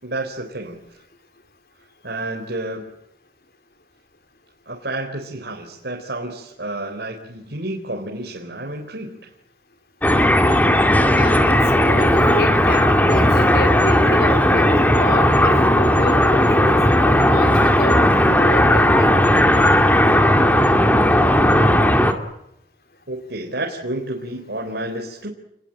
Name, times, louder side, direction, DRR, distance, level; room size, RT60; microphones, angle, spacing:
voice 1, 0.0-0.8 2.0-2.8 4.7-9.2 23.1-25.3, right 1 dB, 75° right, 0 dB, 4.0 m, -30 dB
sound 1, 10.0-22.1, left 1 dB, 10° left, 2.3 m, -15 dB
voice 2, 11.2-19.2, left 1 dB, 60° left, 8 dB, 3.5 m, -29 dB
29.0 x 21.5 x 8.8 m, 0.82 s
head